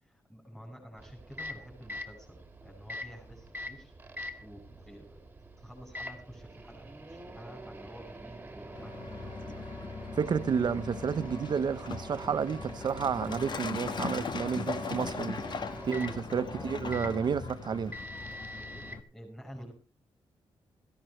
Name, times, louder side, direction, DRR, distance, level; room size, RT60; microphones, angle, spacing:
voice 1, 0.0-5.2 5.6-9.6 15.8-16.7 18.6-19.7, equal, 5° left, 5.6 m, -50 dB
Microwave oven, 1.0-19.0, equal, 20° right, 2.2 m, -45 dB
Truck, 8.7-19.0, left 5 dB, 50° left, 1.6 m, -39 dB
voice 2, 10.1-15.4 15.9-18.0, right 6 dB, 50° right, 1.0 m, -31 dB
17.0 x 15.0 x 3.3 m
wide cardioid pair, 135°, 10 cm